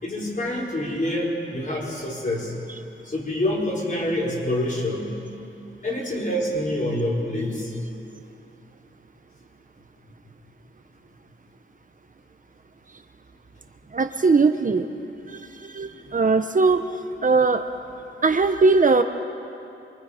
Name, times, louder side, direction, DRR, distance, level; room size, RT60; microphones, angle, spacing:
voice 1, 0.0-2.5 3.0-5.2 5.8-7.7, left 1 dB, 40° left, -4 dB, 4.7 m, -26 dB
voice 2, 13.9-14.9 15.3-16.8 17.2-17.7 18.2-19.0, right 4 dB, 40° right, 8 dB, 0.8 m, -20 dB
27.0 x 23.5 x 5.0 m, 2.7 s
wide cardioid pair, 145°, 21 cm